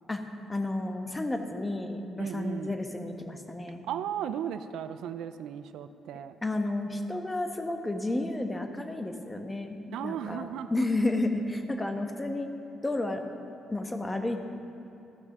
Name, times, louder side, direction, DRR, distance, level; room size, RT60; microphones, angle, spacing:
voice 1, 0.5-3.8 6.4-12.5 12.8-13.2 13.7-14.4, left 2 dB, 15° left, 5 dB, 1.0 m, -31 dB
voice 2, 2.2-2.8 3.8-6.4 9.9-10.9, right 9 dB, 85° right, 11 dB, 0.4 m, -36 dB
14.0 x 6.1 x 6.5 m, 2.8 s
cardioid pair, 90°, 0 cm